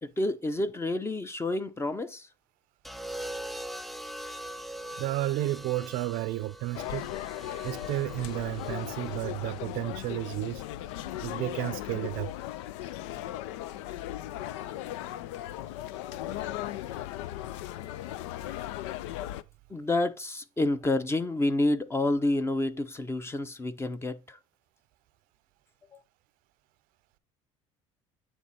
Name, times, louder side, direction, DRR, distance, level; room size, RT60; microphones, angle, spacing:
voice 1, 0.0-2.3 19.7-24.4 25.9-26.0, left 2 dB, 15° left, 0.7 m, -29 dB
sound 1, 2.8-11.0 12.2-12.6, right 1 dB, ahead, 0.4 m, -43 dB
voice 2, 5.0-7.1 7.6-10.7 11.2-12.3, right 16 dB, 70° right, 0.5 m, -32 dB
sound 2, 6.7-19.4, left 13 dB, 85° left, 0.4 m, -37 dB
9.1 x 3.3 x 4.1 m
supercardioid pair, 90°, 15 cm